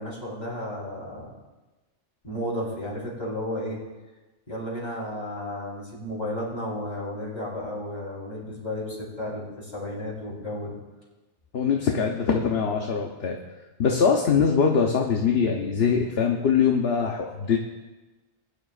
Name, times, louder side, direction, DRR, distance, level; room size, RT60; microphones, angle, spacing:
voice 1, 0.0-1.3 2.2-3.8 4.5-10.8, left 1 dB, 35° left, -6 dB, 4.0 m, -33 dB
voice 2, 11.5-13.4 13.8-17.6, left 6 dB, 55° left, 1 dB, 1.1 m, -22 dB
21.0 x 10.5 x 2.5 m, 1.2 s
omnidirectional pair, 1.3 m